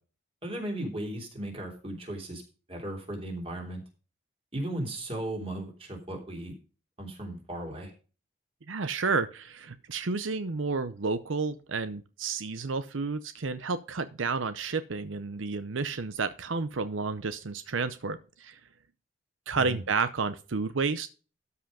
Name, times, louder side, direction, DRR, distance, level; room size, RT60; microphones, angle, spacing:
voice 1, 0.4-2.4 2.7-3.8 4.5-6.5 7.0-7.9 19.5-19.8, right 1 dB, 30° right, 2 dB, 3.2 m, -36 dB
voice 2, 8.7-18.6 19.5-21.1, right 4 dB, 85° right, 12 dB, 0.7 m, -31 dB
13.0 x 5.7 x 5.0 m, 0.35 s
head